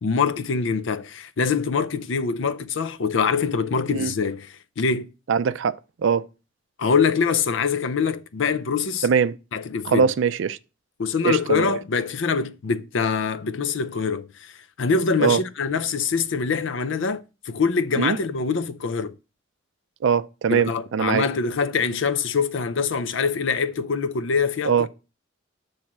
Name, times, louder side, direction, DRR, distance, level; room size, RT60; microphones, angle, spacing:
voice 1, 0.0-5.1 6.8-9.1 9.5-10.1 11.0-14.5 14.8-19.1 20.5-24.9, left 5 dB, 70° left, 0.5 m, -24 dB
voice 2, 5.3-5.8 6.0-6.3 9.0-9.4 9.8-10.6 11.2-11.8 15.2-15.4 18.0-18.2 20.0-21.3 24.6-24.9, right 6 dB, 65° right, 0.4 m, -21 dB
7.3 x 3.2 x 5.9 m
head